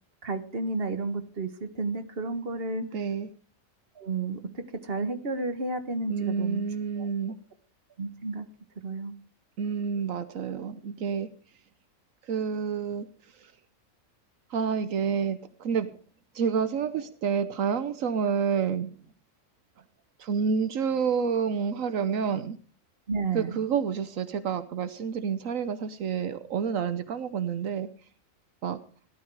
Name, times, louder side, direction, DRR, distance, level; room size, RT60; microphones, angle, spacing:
voice 1, 0.2-2.8 3.9-6.6 7.0-7.1 8.0-8.4 8.8-9.1 23.1-23.6, right 3 dB, 45° right, 9 dB, 1.7 m, -32 dB
voice 2, 2.9-3.3 6.1-7.4 9.6-11.3 12.2-13.5 14.5-15.9 16.3-19.0 20.2-22.6 23.3-27.9 28.6-28.8, right 6 dB, 80° right, 12 dB, 1.3 m, -29 dB
17.0 x 12.0 x 4.8 m, 0.39 s
omnidirectional pair, 1.4 m